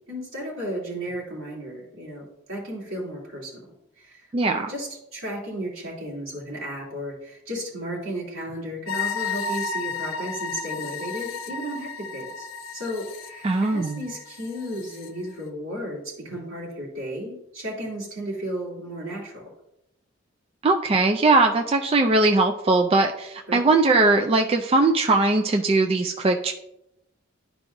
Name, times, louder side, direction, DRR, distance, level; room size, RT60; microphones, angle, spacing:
voice 1, 0.1-3.6 4.0-19.5 23.5-23.7, equal, 80° right, -4 dB, 2.7 m, -34 dB
voice 2, 4.3-4.7 13.4-14.1 20.6-26.5, right 3 dB, 30° right, 4 dB, 0.3 m, -20 dB
sound 1, 8.9-15.1, left 5 dB, 80° left, 0.7 m, -33 dB
11.5 x 4.7 x 2.6 m, 0.84 s
head